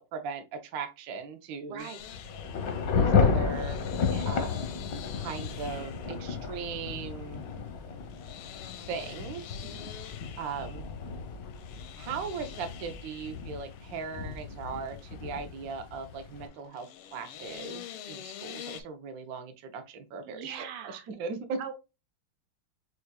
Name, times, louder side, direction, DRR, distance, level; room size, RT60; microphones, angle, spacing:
voice 1, 0.0-1.9 2.9-3.8 4.3-4.6 5.1-7.4 8.9-9.4 9.8-10.1 10.4-10.9 12.0-20.6 20.8-21.6, right 5 dB, 65° right, 0.9 m, -38 dB
voice 2, 1.7-2.0 4.0-4.5 9.6-9.9 20.2-21.1 21.6-21.7, right 9 dB, 85° right, 1.7 m, -42 dB
sound 1, 1.8-18.8, left 10 dB, 85° left, 1.5 m, -48 dB
Thunder / Rain, 2.0-16.5, left 5 dB, 65° left, 0.9 m, -32 dB
6.5 x 2.4 x 2.2 m
omnidirectional pair, 2.4 m